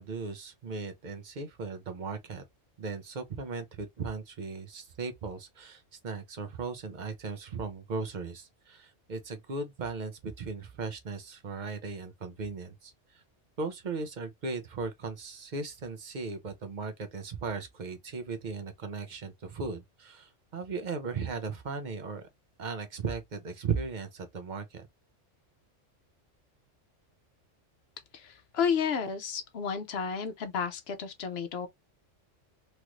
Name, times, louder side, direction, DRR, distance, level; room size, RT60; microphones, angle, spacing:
voice 1, 0.0-2.4 2.8-13.2 13.6-22.3 22.6-24.9, right 4 dB, 45° right, 0.6 m, -37 dB
voice 2, 28.1-31.7, left 6 dB, 65° left, 0.8 m, -32 dB
3.1 x 2.4 x 2.9 m
omnidirectional pair, 1.3 m